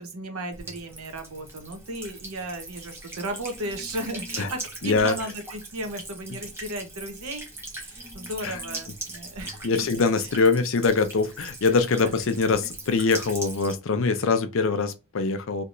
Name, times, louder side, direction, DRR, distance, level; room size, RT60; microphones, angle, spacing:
voice 1, 0.0-7.5 7.8-9.9 12.0-12.1, right 1 dB, 80° right, 0.9 m, -35 dB
Buzz / Water tap faucet / Trickle dribble, 0.5-13.7, right 2 dB, 10° right, 0.8 m, -40 dB
voice 2, 4.8-5.2 8.4-8.6 9.6-15.6, left 4 dB, 60° left, 0.5 m, -23 dB
3.3 x 2.9 x 2.5 m
head